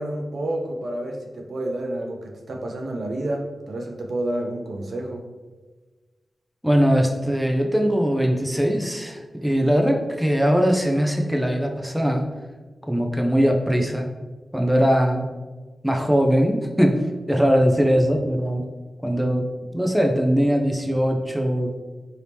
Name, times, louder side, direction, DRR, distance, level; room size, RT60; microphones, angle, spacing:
voice 1, 0.0-5.2, right 1 dB, 70° right, 1 dB, 0.5 m, -29 dB
voice 2, 6.6-12.3 12.9-14.1 14.5-15.3 15.8-17.0 17.3-18.6 19.0-19.5 19.7-21.7, equal, 5° right, 2 dB, 0.4 m, -20 dB
2.9 x 2.7 x 3.3 m, 1.3 s
wide cardioid pair, 105°, 0 cm